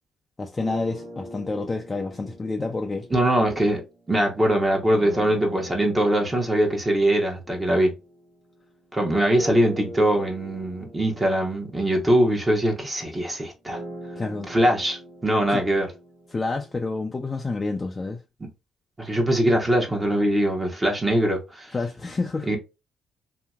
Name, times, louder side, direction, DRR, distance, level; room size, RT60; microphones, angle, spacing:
voice 1, 0.4-3.1 14.2-14.5 15.5-15.6 16.3-18.2 21.7-22.5, left 3 dB, 25° left, 0.4 m, -29 dB
sound 1, 0.6-4.1 4.9-8.7 9.3-17.3, equal, 85° right, 1.2 m, -42 dB
voice 2, 3.1-3.8 4.1-7.9 8.9-13.8 14.5-15.9 18.4-18.5 19.0-21.7 22.5-22.6, right 1 dB, 20° right, 1.0 m, -22 dB
2.8 x 2.7 x 2.3 m
cardioid pair, 90°, 0 cm